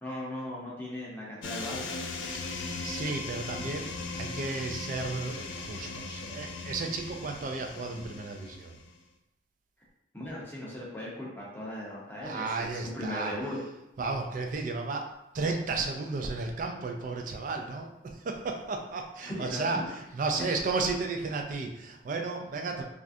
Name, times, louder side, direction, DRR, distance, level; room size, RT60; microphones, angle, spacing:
voice 1, 0.0-2.0 10.1-12.7 12.9-13.6 19.2-19.8, left 1 dB, 10° left, -5 dB, 0.6 m, -38 dB
sound 1, 1.4-9.0, left 3 dB, 75° left, 0.3 m, -38 dB
voice 2, 2.3-8.7 12.2-13.3 14.0-15.1 15.3-22.8, right 3 dB, 40° right, 3 dB, 0.3 m, -33 dB
3.2 x 2.4 x 2.6 m, 0.89 s
head